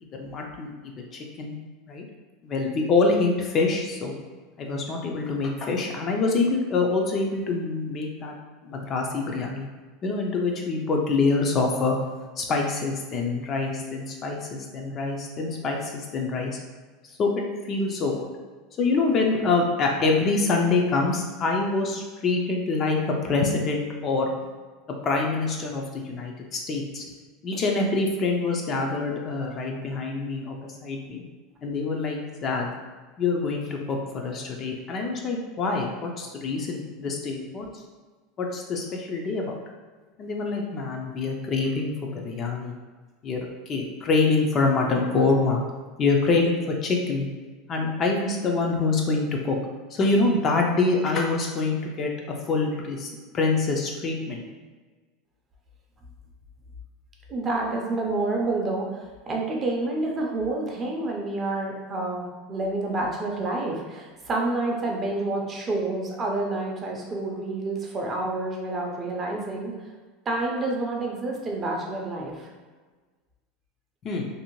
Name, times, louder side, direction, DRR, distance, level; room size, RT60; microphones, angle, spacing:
voice 1, 0.0-1.6 1.9-2.0 2.4-4.1 4.6-8.4 8.6-9.7 10.0-12.0 12.4-16.6 17.2-17.3 17.7-18.1 18.8-24.3 25.0-27.0 27.4-31.2 31.6-32.7 33.2-37.7 38.4-39.6 40.2-42.8 43.2-45.6 46.0-47.3 47.7-49.6 49.9-52.1 52.4-54.4 74.0-74.2, left 3 dB, 30° left, 1 dB, 0.3 m, -25 dB
voice 2, 57.3-69.7 70.3-72.5, right 2 dB, 25° right, -1 dB, 0.5 m, -28 dB
2.6 x 2.1 x 2.9 m, 1.4 s
supercardioid pair, 140°, 0 cm